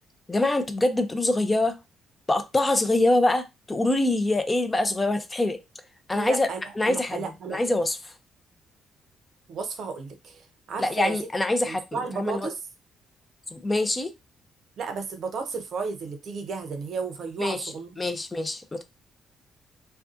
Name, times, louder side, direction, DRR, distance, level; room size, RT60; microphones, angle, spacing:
voice 1, 0.3-1.8 2.3-5.6 6.1-6.5 6.8-8.1 10.8-12.5 13.5-14.1 17.4-17.7 18.0-18.8, left 2 dB, 20° left, 0.4 m, -25 dB
voice 2, 6.1-7.6 9.5-11.2 11.7-12.6 14.8-18.0, right 4 dB, 65° right, 0.6 m, -33 dB
2.5 x 2.2 x 2.4 m
cardioid pair, 90°, 0 cm